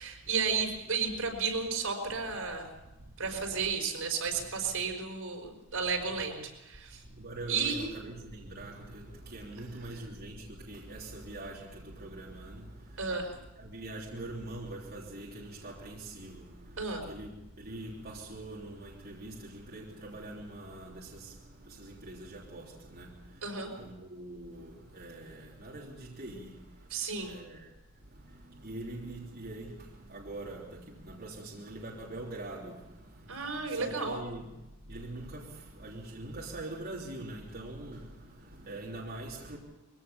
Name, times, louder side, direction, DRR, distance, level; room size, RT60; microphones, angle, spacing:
voice 1, 0.0-2.7 3.2-7.0 7.5-7.9 13.0-13.4 16.8-17.0 23.4-23.7 26.9-27.3 33.3-34.2, right 5 dB, 75° right, 5.1 m, -33 dB
voice 2, 2.7-3.7 4.3-4.7 5.7-5.8 6.1-6.2 7.0-39.6, right 2 dB, 45° right, 3.4 m, -44 dB
22.5 x 17.0 x 7.1 m
head